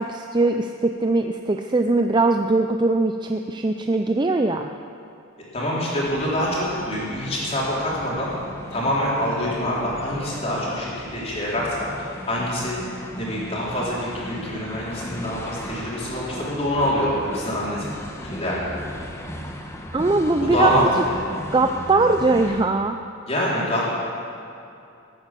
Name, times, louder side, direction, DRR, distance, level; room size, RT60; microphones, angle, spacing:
voice 1, 0.0-4.7 19.9-20.9 21.5-23.0, right 2 dB, 20° right, 5 dB, 0.4 m, -21 dB
voice 2, 5.5-8.3 8.7-12.8 13.2-17.9 18.2-18.7 20.2-21.2 23.3-24.0, equal, 30° left, -6 dB, 4.0 m, -25 dB
sound 1, 6.0-22.7, equal, 15° left, 1.1 m, -36 dB
18.0 x 9.0 x 7.5 m, 2.6 s
head